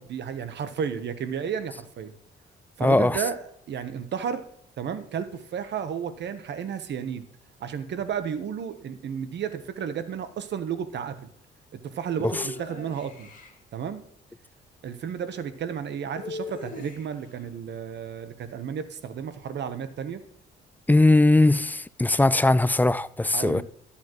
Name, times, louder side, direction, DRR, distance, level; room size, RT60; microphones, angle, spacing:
voice 1, 0.0-2.1 2.8-4.4 4.8-7.2 7.6-11.3 11.7-13.3 13.7-14.0 14.8-20.2 23.3-23.6, right 7 dB, 60° right, 1.0 m, -32 dB
voice 2, 2.8-3.2 12.2-12.3 20.9-23.6, left 2 dB, 10° left, 0.3 m, -20 dB
sound 1, 12.2-13.6 16.1-17.3, left 3 dB, 40° left, 2.4 m, -39 dB
13.0 x 7.1 x 3.1 m
cardioid pair, 90°, 20 cm